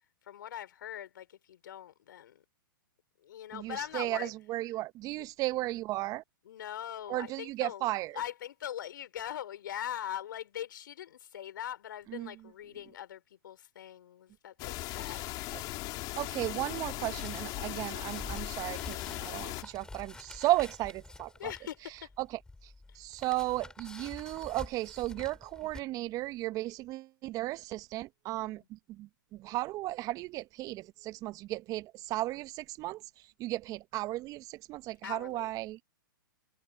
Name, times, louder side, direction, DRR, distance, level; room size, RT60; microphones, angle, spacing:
voice 1, 0.2-2.4 3.2-4.3 5.2-5.3 6.4-7.8 8.1-15.3 21.4-22.1 22.9-23.0 28.4-28.7 35.0-35.5, left 11 dB, 65° left, 4.5 m, -41 dB
voice 2, 3.5-6.2 7.1-8.2 12.1-12.3 15.0-15.2 15.5-15.6 16.2-21.5 22.2-22.3 22.6-33.0 33.4-35.8, right 17 dB, 30° right, 1.0 m, -35 dB
sound 1, 14.6-19.6, left 20 dB, 35° left, 3.8 m, -38 dB
sound 2, 17.1-25.8, left 2 dB, 5° left, 7.4 m, -48 dB
hypercardioid pair, 120°, 12 cm